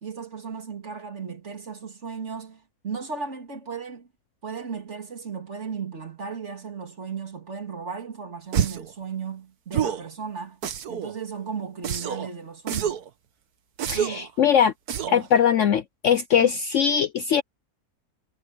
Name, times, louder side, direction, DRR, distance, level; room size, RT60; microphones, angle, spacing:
voice 1, 0.0-4.1 4.4-10.6 10.9-13.0 13.9-14.3 15.0-15.3 16.3-16.5, right 5 dB, 45° right, 2.7 m, -35 dB
sound 1, 8.5-8.9 9.7-10.1 10.6-11.1 11.8-12.3 12.7-13.1 13.8-14.3 14.9-15.3, right 9 dB, 70° right, 1.6 m, -27 dB
voice 2, 13.9-14.7 15.1-17.4, left 8 dB, 60° left, 0.8 m, -21 dB
omnidirectional pair, 1.7 m